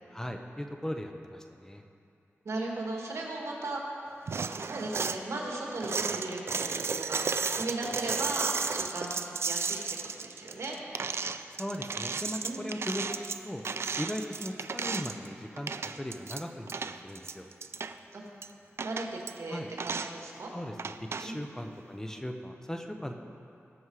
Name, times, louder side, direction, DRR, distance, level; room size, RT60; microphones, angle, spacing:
voice 1, 0.1-1.8 11.6-13.1 13.4-13.6 14.0-17.5 19.5-19.7 20.5-23.1, equal, 10° left, 4 dB, 0.7 m, -38 dB
voice 2, 2.5-3.8 4.7-7.2 7.5-9.8 10.2-10.8 12.4-12.8 18.1-18.3 18.8-20.5 21.2-21.4, right 2 dB, 80° right, -1 dB, 1.9 m, -36 dB
sound 1, 4.3-5.2 5.8-15.3 15.6-16.4 16.7-17.9 18.4-18.5 18.8-19.3 19.8-20.1 20.8-21.3, right 5 dB, 60° right, 0.4 m, -34 dB
18.5 x 6.3 x 4.8 m, 2.7 s
wide cardioid pair, 120°, 5 cm